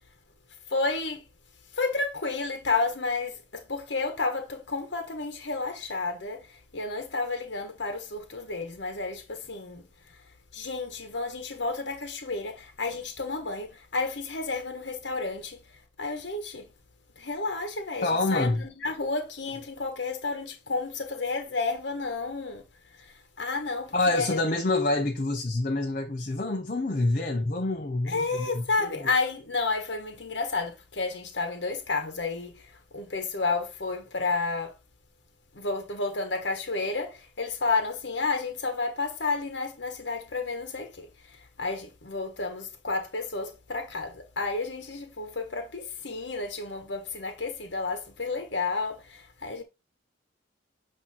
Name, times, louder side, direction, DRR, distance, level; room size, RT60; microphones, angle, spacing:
voice 1, 0.7-1.2 1.7-9.9 10.5-15.6 16.0-16.7 17.2-22.6 23.0-24.4 28.1-34.7 35.5-49.6, left 3 dB, 65° left, 1.2 m, -31 dB
voice 2, 18.0-18.6 23.9-29.1, left 2 dB, 45° left, 0.7 m, -27 dB
8.4 x 2.9 x 4.3 m
head